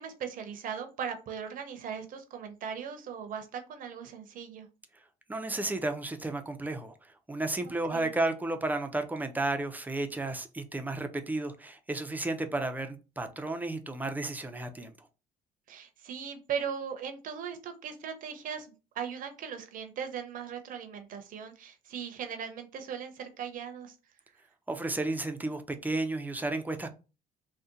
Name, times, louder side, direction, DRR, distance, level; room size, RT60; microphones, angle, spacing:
voice 1, 0.0-4.7 7.9-8.1 15.7-23.9, right 7 dB, 55° right, 0.6 m, -38 dB
voice 2, 5.3-15.1 24.7-26.9, right 2 dB, 10° right, 0.4 m, -33 dB
2.7 x 2.1 x 3.6 m
cardioid pair, 110°, 17 cm